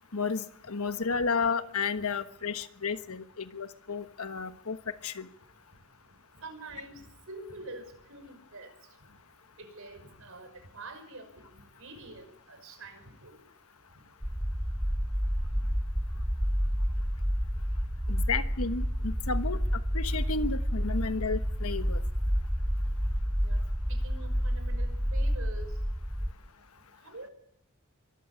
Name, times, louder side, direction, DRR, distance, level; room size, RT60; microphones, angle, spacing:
voice 1, 0.1-4.8 5.0-5.3 18.1-19.6 19.9-22.0, left 4 dB, 80° left, 10 dB, 1.3 m, -32 dB
voice 2, 6.4-8.7 9.6-11.3 11.5-13.4 23.4-23.6 23.9-25.7 27.0-27.3, right 2 dB, 65° right, 7 dB, 5.6 m, -46 dB
sound 1, 14.2-26.3, equal, 5° right, 1.4 m, -29 dB
23.5 x 13.5 x 8.8 m, 0.75 s
head